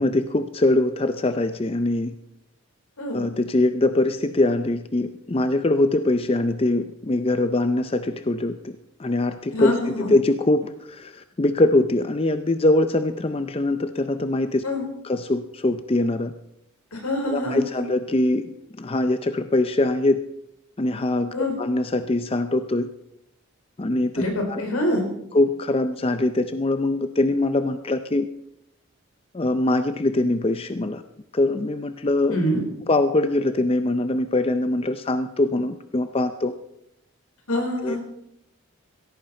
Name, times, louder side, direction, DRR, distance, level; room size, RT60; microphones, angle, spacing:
voice 1, 0.0-2.1 3.1-14.6 15.0-16.3 17.2-20.2 20.8-22.9 23.8-24.2 24.5-24.6 25.3-28.3 29.3-31.0 31.3-32.4 32.9-36.5 37.8-38.0, left 2 dB, 25° left, 10 dB, 0.5 m, -23 dB
voice 2, 9.5-10.1 14.6-14.8 16.9-17.9 21.3-21.5 24.2-25.0 32.3-32.6 37.5-38.0, left 1 dB, 85° left, 2 dB, 4.4 m, -25 dB
16.5 x 14.0 x 4.3 m, 0.79 s
head